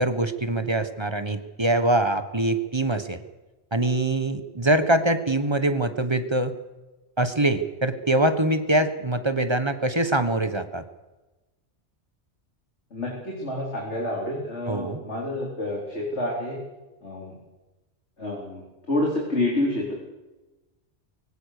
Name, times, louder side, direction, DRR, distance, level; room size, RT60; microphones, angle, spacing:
voice 1, 0.0-3.2 3.7-6.5 7.2-10.8 14.7-15.0, right 1 dB, 25° right, 10 dB, 1.3 m, -23 dB
voice 2, 12.9-16.6 17.0-17.3 18.2-19.9, left 1 dB, 80° left, -2 dB, 4.4 m, -28 dB
23.5 x 17.0 x 6.7 m, 1.1 s
omnidirectional pair, 1.2 m